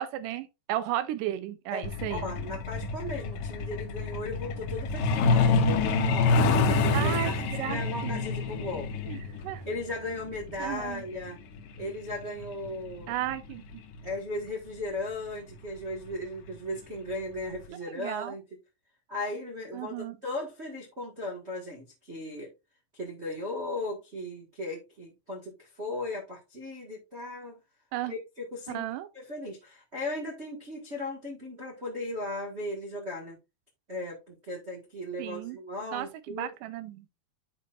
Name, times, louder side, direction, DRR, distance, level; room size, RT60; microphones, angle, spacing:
voice 1, 0.0-2.3 6.9-8.2 9.1-9.6 10.6-11.0 13.1-13.8 17.9-18.3 19.7-20.2 27.9-28.1 28.7-29.1 35.2-35.6 35.9-37.1, right 13 dB, 85° right, 1.9 m, -34 dB
Truck, 1.8-14.1 15.4-15.5 15.9-16.1 16.5-16.8 17.1-17.2 17.6-17.7, left 3 dB, 70° left, 2.2 m, -28 dB
voice 2, 2.1-8.9 9.6-11.4 11.8-13.1 14.0-18.4 19.1-22.5 22.9-27.5 28.0-28.8 29.1-33.4 33.9-36.5, left 1 dB, 70° right, 0.6 m, -37 dB
11.0 x 4.6 x 2.5 m
omnidirectional pair, 4.5 m